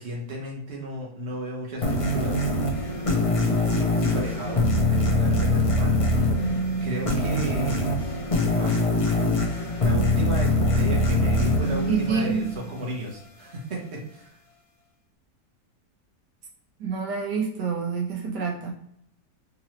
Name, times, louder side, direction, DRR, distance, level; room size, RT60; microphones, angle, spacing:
voice 1, 0.0-2.4 3.3-6.4 6.8-7.9 8.5-8.8 9.8-14.3, right 1 dB, 45° right, -3 dB, 1.3 m, -34 dB
sound 1, 1.8-13.0, left 1 dB, 35° left, 0.5 m, -23 dB
voice 2, 11.9-12.5 16.8-18.7, right 5 dB, 80° right, -1 dB, 1.4 m, -27 dB
3.8 x 2.9 x 3.0 m, 0.71 s
omnidirectional pair, 1.8 m